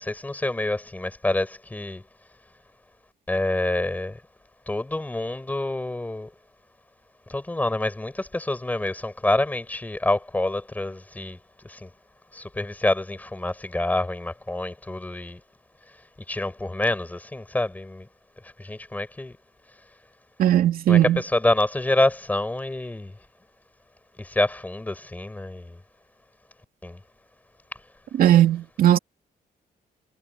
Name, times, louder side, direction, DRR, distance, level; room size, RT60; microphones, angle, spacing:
voice 1, 0.0-2.0 3.3-4.2 4.7-6.3 7.3-11.4 11.7-11.9 12.3-15.4 16.3-18.1 18.6-19.3 20.9-23.1 24.2-25.8 26.8-27.0, left 2 dB, 10° left, 6.5 m, -27 dB
voice 2, 20.4-21.2 28.2-29.0, right 11 dB, 70° right, 2.6 m, -18 dB
wide cardioid pair, 170°, 16 cm